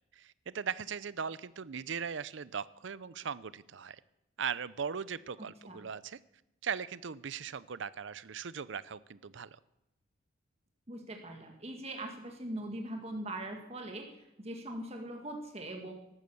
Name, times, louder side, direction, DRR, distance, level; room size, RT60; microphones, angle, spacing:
voice 1, 0.1-4.0 4.4-6.2 6.6-9.6, right 6 dB, 60° right, 18 dB, 0.5 m, -39 dB
voice 2, 10.9-14.1 14.4-15.9, right 1 dB, 30° right, 3 dB, 1.8 m, -41 dB
14.0 x 12.5 x 6.9 m, 0.87 s
head